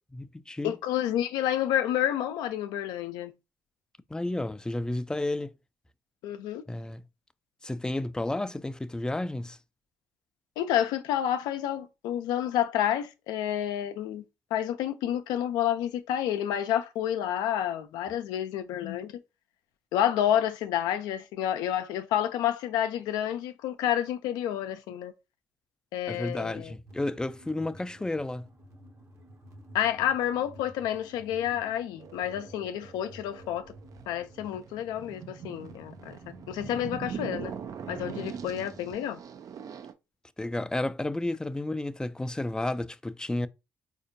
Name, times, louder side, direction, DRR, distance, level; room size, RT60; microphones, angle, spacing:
voice 1, 0.1-0.7 4.1-5.5 6.7-7.0 7.6-9.6 26.1-28.5 40.4-43.5, left 2 dB, 10° left, 0.3 m, -32 dB
voice 2, 0.6-3.3 6.2-6.6 10.6-14.2 14.5-19.1 19.9-25.1 25.9-26.7 29.7-33.6 34.1-36.2 36.5-37.5 37.9-39.2, left 11 dB, 85° left, 0.4 m, -29 dB
sound 1, 26.9-38.9, equal, 45° right, 0.9 m, -52 dB
sound 2, 32.0-39.9, right 7 dB, 60° right, 0.4 m, -42 dB
4.2 x 2.5 x 2.6 m
supercardioid pair, 60°, 7 cm